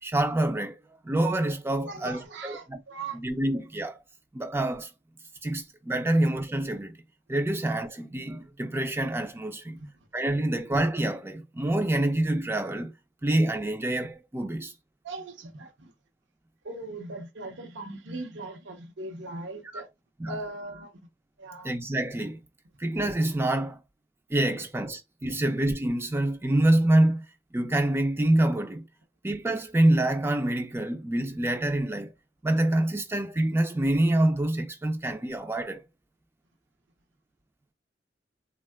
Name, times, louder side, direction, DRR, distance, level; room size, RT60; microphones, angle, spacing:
voice 1, 0.0-0.8 1.0-2.8 3.1-4.0 4.3-4.9 5.4-7.0 7.3-9.8 10.1-12.9 13.2-14.7 20.2-20.4 21.6-22.4 22.8-23.8 24.3-27.3 27.5-28.8 29.2-32.1 32.4-35.8, right 1 dB, 15° right, 0.3 m, -26 dB
voice 2, 1.9-3.2 9.8-9.9 15.0-15.9 16.6-19.9 20.2-20.9 21.4-21.7 25.3-25.4, right 2 dB, 90° right, 0.8 m, -39 dB
3.5 x 2.2 x 2.2 m
head